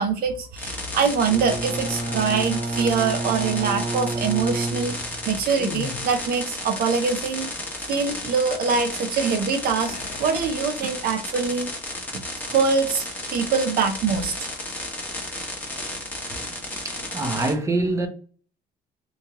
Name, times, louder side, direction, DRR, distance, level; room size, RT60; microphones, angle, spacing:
voice 1, 0.0-7.5 7.9-11.7 12.1-13.0 13.3-14.5, right 5 dB, 65° right, 0.6 m, -24 dB
sound 1, 0.6-17.5, left 1 dB, 10° left, 1.2 m, -33 dB
Bowed string instrument, 1.2-5.4, right 2 dB, 45° right, 1.5 m, -29 dB
sound 2, 1.9-2.6 5.5-6.6 9.8-11.3 11.7-11.9 14.0-14.5, left 7 dB, 50° left, 0.7 m, -39 dB
voice 2, 16.3-18.1, right 2 dB, 20° right, 0.8 m, -26 dB
3.1 x 2.8 x 3.5 m
cardioid pair, 110°, 17 cm